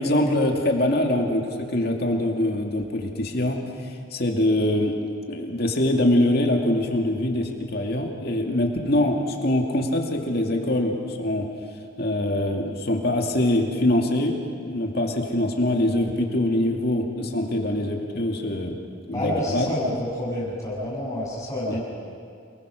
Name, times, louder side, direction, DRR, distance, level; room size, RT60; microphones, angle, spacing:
voice 1, 0.0-5.0 5.3-11.5 12.0-14.4 14.6-18.8 19.1-19.7 21.7-21.8, left 1 dB, 50° left, 2 dB, 2.4 m, -23 dB
voice 2, 19.1-21.8, left 1 dB, 15° left, -6 dB, 7.3 m, -28 dB
28.5 x 20.5 x 6.4 m, 2.3 s
head